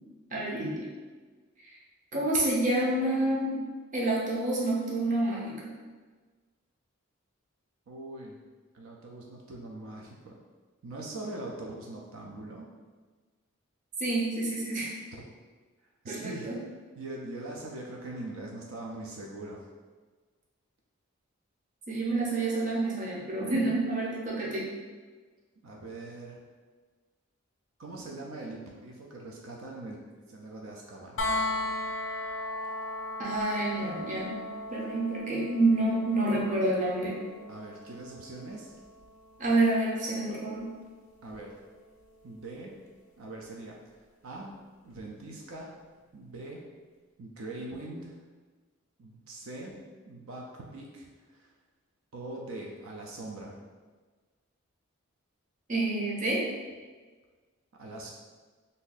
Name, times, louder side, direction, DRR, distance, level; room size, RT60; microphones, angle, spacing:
voice 1, 0.3-0.9 1.7-1.8 2.1-5.7 14.0-14.9 16.1-16.6 21.9-24.7 33.2-34.4 34.7-37.2 39.4-40.7 55.7-56.4, right 2 dB, 35° right, -4 dB, 0.6 m, -28 dB
voice 2, 7.9-8.4 8.7-10.4 10.8-12.7 15.1-15.3 16.0-16.5 17.0-19.6 25.6-26.4 27.8-30.0 30.3-31.3 37.5-38.7 41.2-41.6 42.2-42.8 43.2-44.5 44.8-45.8 46.1-46.7 47.2-48.2 49.0-51.5 52.1-53.6 57.8-58.1, right 2 dB, 75° right, -1 dB, 0.5 m, -42 dB
sound 1, 31.2-43.0 44.9-45.0, left 2 dB, 60° left, 0.4 m, -38 dB
2.6 x 2.6 x 3.9 m, 1.4 s
head